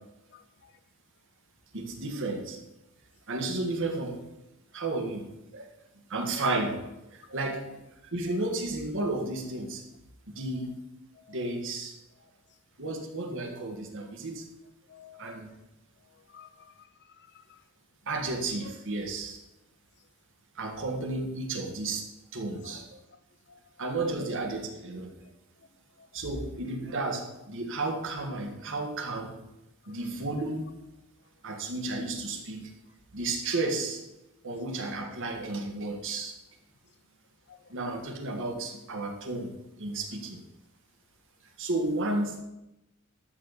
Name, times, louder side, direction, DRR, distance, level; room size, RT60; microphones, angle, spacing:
voice 1, 1.7-2.6 3.3-4.2 4.7-5.3 5.5-5.7 6.1-7.8 8.1-9.8 10.3-10.8 11.3-11.9 12.8-14.4 15.2-15.6 18.1-19.4 20.5-22.0 22.3-23.0 23.8-25.2 26.1-29.4 29.9-30.7 31.4-32.7 33.1-34.0 34.4-36.3 37.7-39.5 39.8-40.4 41.6-42.4, right 2 dB, 60° right, 1.6 m, -32 dB
voice 2, 7.3-7.8 8.3-8.4 11.3-11.4 14.9-15.5 16.3-16.9 17.2-17.6 22.6-22.7 23.5-23.6 26.0-26.1 29.9-30.0 37.5-37.6, left 6 dB, 50° left, 0.6 m, -51 dB
12.5 x 4.4 x 7.2 m
head